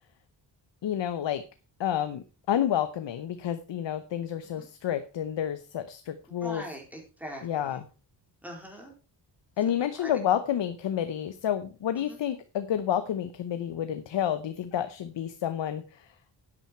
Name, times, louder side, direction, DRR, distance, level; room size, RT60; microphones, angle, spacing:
voice 1, 0.8-1.4 1.8-6.6 7.4-7.8 9.6-16.1, left 10 dB, 75° left, 11 dB, 0.9 m, -30 dB
voice 2, 6.3-7.8 8.4-8.9 9.7-10.1 12.0-12.2, equal, 5° right, 1 dB, 4.3 m, -43 dB
10.5 x 8.9 x 4.5 m, 0.33 s
wide cardioid pair, 115°, 45 cm